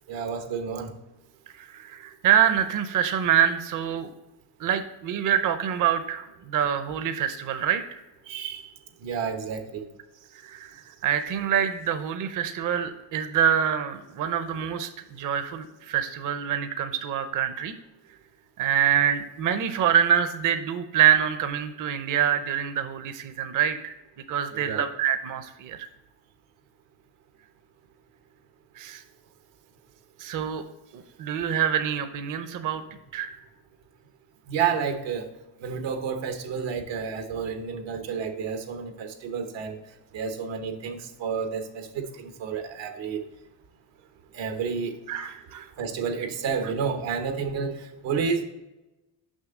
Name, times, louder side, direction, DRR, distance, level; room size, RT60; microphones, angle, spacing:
voice 1, 0.1-0.9 8.3-8.7 9.0-9.9 24.6-24.8 34.5-35.3 35.6-39.8 40.1-43.3 44.3-45.0 45.8-48.4, right 6 dB, 85° right, 6 dB, 1.1 m, -30 dB
voice 2, 1.6-4.1 4.6-8.0 10.4-17.7 18.6-23.9 24.3-25.9 28.8-29.0 30.2-30.6 30.9-32.8 33.1-33.4 45.1-45.7, right 9 dB, 45° right, 9 dB, 0.6 m, -25 dB
6.4 x 5.7 x 3.6 m, 1.0 s
cardioid pair, 115°, 43 cm